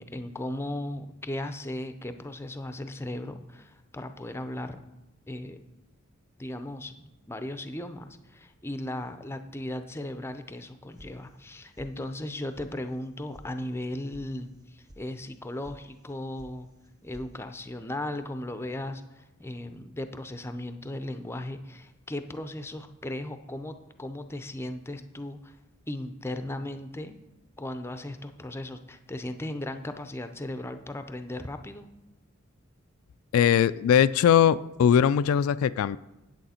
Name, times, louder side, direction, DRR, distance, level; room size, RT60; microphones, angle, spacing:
voice 1, 0.0-4.8 5.3-5.6 6.4-16.7 17.0-25.6 25.9-27.2 27.6-31.9, left 1 dB, 10° left, 9 dB, 0.5 m, -37 dB
sound 1, 11.0-11.5 11.8-12.3 12.5-12.7 13.0-13.5 13.7-14.2 14.5-15.0 15.3-15.8 16.0-16.5 16.8-17.3, equal, 20° right, 0.7 m, -50 dB
voice 2, 33.3-36.0, left 8 dB, 85° left, 14 dB, 0.3 m, -21 dB
9.2 x 8.5 x 4.2 m, 0.98 s
head